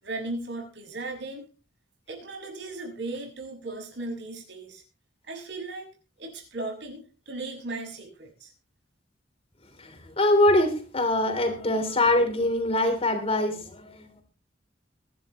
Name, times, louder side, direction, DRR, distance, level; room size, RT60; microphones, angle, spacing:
voice 1, 0.0-1.5 2.1-4.8 5.3-5.9 6.2-8.5, right 2 dB, 65° right, 6.3 m, -36 dB
voice 2, 9.8-14.2, left 1 dB, 30° left, 3.3 m, -24 dB
22.5 x 11.5 x 3.1 m
head